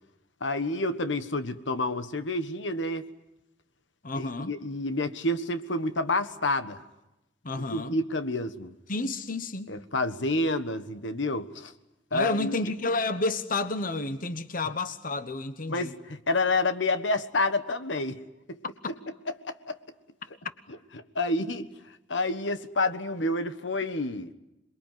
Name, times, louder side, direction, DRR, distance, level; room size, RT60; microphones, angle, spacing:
voice 1, 0.4-3.0 4.1-6.8 7.7-8.7 9.7-11.7 12.1-12.6 15.7-18.2 18.5-18.6 19.4-19.8 21.1-21.7 22.1-24.3, left 2 dB, 75° left, 10 dB, 1.5 m, -29 dB
voice 2, 4.0-4.5 7.4-8.0 8.9-9.7 12.1-15.9 18.8-18.9, left 2 dB, 50° left, 11 dB, 1.1 m, -30 dB
27.5 x 22.0 x 9.4 m, 0.95 s
head